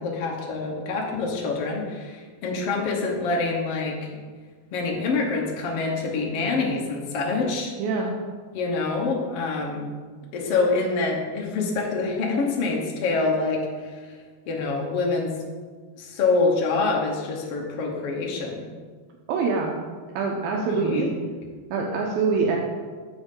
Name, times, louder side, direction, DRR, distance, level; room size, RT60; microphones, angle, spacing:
voice 1, 0.0-4.0 4.7-7.7 8.5-9.9 10.3-14.2 14.5-15.3 16.0-18.6 20.7-21.1, left 3 dB, 75° left, -1 dB, 1.3 m, -26 dB
voice 2, 7.8-8.1 19.3-19.8 20.2-21.1 21.7-22.6, right 4 dB, 75° right, 0 dB, 2.4 m, -24 dB
13.5 x 5.2 x 3.8 m, 1.5 s
omnidirectional pair, 4.5 m